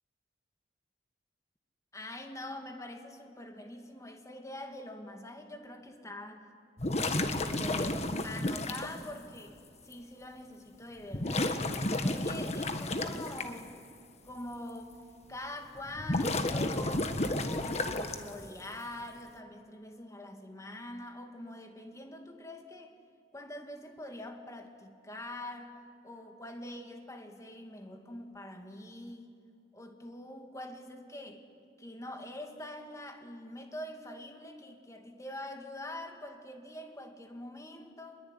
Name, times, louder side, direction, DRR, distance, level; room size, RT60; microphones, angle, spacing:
voice 1, 1.9-6.4 7.0-9.6 9.8-11.5 12.0-13.8 14.2-14.9 15.3-17.1 17.4-22.9 23.3-29.3 29.7-31.4 31.8-38.2, left 1 dB, 20° left, 4 dB, 2.4 m, -44 dB
sound 1, 6.8-8.9 9.9-10.0 11.1-13.4 15.9-18.5, left 2 dB, 40° left, 1.6 m, -31 dB
26.0 x 21.5 x 9.6 m, 2.4 s
head